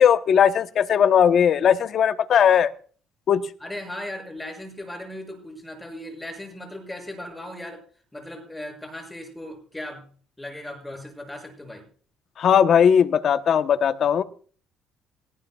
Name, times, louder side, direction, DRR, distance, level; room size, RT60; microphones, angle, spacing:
voice 1, 0.0-2.7 3.3-3.5 12.4-14.2, left 8 dB, 50° left, 10 dB, 0.9 m, -18 dB
voice 2, 3.6-7.8 8.1-10.0 10.4-11.9, left 1 dB, 10° left, 3 dB, 6.8 m, -37 dB
18.5 x 17.5 x 2.3 m, 0.43 s
cardioid pair, 125°, 0 cm